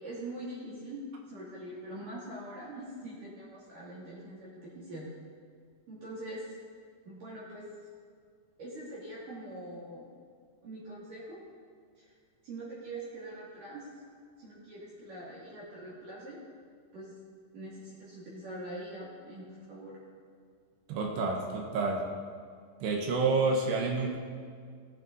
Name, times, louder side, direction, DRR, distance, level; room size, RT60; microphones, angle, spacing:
voice 1, 0.0-5.1 5.9-6.5 7.1-7.7 8.6-10.0 10.6-11.4 12.0-12.1 12.4-13.9 14.4-16.4 16.9-17.2 17.5-20.0, right 1 dB, 50° right, -8 dB, 4.1 m, -43 dB
voice 2, 20.9-22.1 22.8-24.2, right 3 dB, 70° right, 0 dB, 3.2 m, -29 dB
19.0 x 9.7 x 4.1 m, 2.1 s
omnidirectional pair, 5.1 m